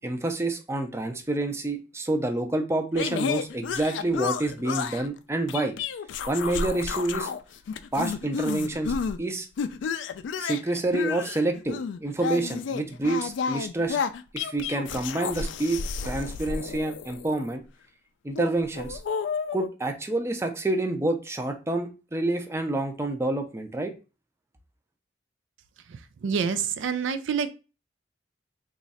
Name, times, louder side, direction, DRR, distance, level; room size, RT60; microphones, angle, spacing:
voice 1, 0.0-5.7 6.3-7.3 7.9-9.5 10.4-14.0 14.3-17.6 18.2-19.0 19.5-23.9, right 2 dB, 15° right, 5 dB, 0.5 m, -28 dB
sound 1, 3.0-5.1 5.5-7.4 7.7-9.2 9.6-17.5 18.3-19.7, left 6 dB, 75° left, 0.3 m, -31 dB
voice 2, 25.9-27.5, right 6 dB, 80° right, 11 dB, 0.4 m, -28 dB
3.0 x 2.4 x 4.0 m, 0.31 s
head